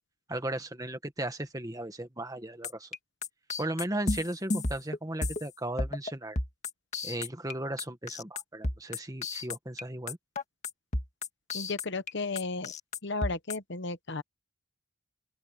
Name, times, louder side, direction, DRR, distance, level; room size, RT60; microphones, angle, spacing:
voice 1, 0.3-2.9 3.6-6.4 7.0-10.2, right 1 dB, 15° right, 1.6 m, -36 dB
sound 1, 2.6-5.5 5.8-6.1 6.4-7.5 7.8-9.8 10.1-12.1 12.4-13.6, left 2 dB, 30° left, 2.0 m, -32 dB
voice 2, 11.5-12.7 13.0-14.2, left 3 dB, 55° left, 1.0 m, -34 dB
open air
head